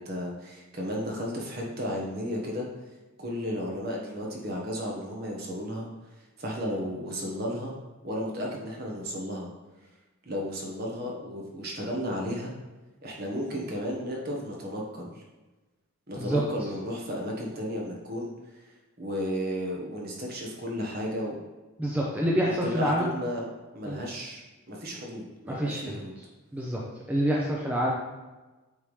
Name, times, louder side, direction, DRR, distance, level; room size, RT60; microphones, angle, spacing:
voice 1, 0.0-2.7 3.2-5.9 6.4-7.7 8.0-9.5 10.2-12.5 13.0-15.2 16.1-18.6 19.0-21.4 22.5-23.5 23.7-24.4 24.7-26.1, equal, 45° right, -1 dB, 1.2 m, -33 dB
voice 2, 21.8-23.1 23.8-24.0 25.5-26.0 26.5-26.8 27.1-27.9, equal, 5° right, -4 dB, 0.6 m, -27 dB
8.3 x 3.6 x 3.2 m, 1.2 s
head